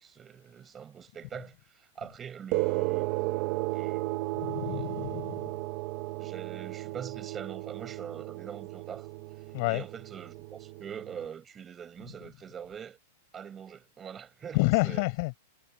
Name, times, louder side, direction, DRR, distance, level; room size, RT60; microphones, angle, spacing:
voice 1, 0.0-3.1 3.7-4.0 4.6-4.9 6.2-9.1 9.7-13.0 13.3-15.0, right 8 dB, 15° right, 7.8 m, -43 dB
sound 1, 2.5-11.3, right 20 dB, 40° right, 2.1 m, -34 dB
voice 2, 4.3-5.5 9.5-9.8 14.5-15.4, left 28 dB, 45° left, 7.7 m, -29 dB
supercardioid pair, 155°, 0 cm